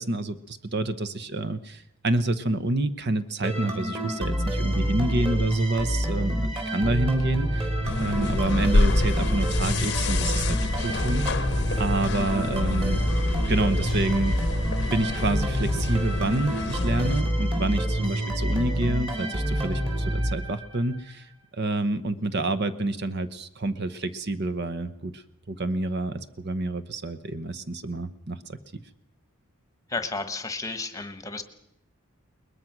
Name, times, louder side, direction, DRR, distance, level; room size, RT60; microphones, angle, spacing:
voice 1, 0.0-7.7 8.0-11.3 11.8-13.0 13.5-14.4 14.9-21.3 21.5-25.2 25.5-28.6, right 2 dB, 50° right, 13 dB, 0.9 m, -28 dB
sound 1, 3.4-21.0, equal, 25° right, 3.9 m, -27 dB
sound 2, 7.8-17.2, left 2 dB, 50° left, 0.8 m, -28 dB
voice 2, 29.9-31.4, left 3 dB, 15° left, 10 dB, 1.2 m, -32 dB
21.5 x 20.5 x 6.1 m, 0.83 s
head